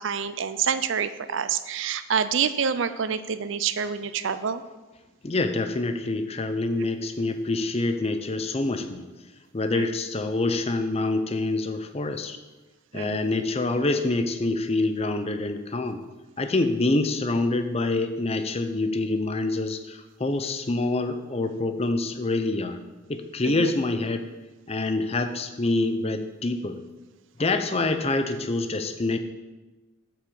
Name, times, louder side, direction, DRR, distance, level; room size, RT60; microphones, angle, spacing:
voice 1, 0.0-4.6 6.8-6.9 9.7-9.9 12.9-13.3 23.5-23.7, right 7 dB, 60° right, 12 dB, 0.5 m, -27 dB
voice 2, 5.2-9.0 9.5-12.4 12.9-16.0 16.4-22.8 23.1-24.2 24.7-26.8 27.4-29.2, left 2 dB, 30° left, 8 dB, 0.6 m, -26 dB
8.2 x 6.2 x 6.8 m, 1.1 s
head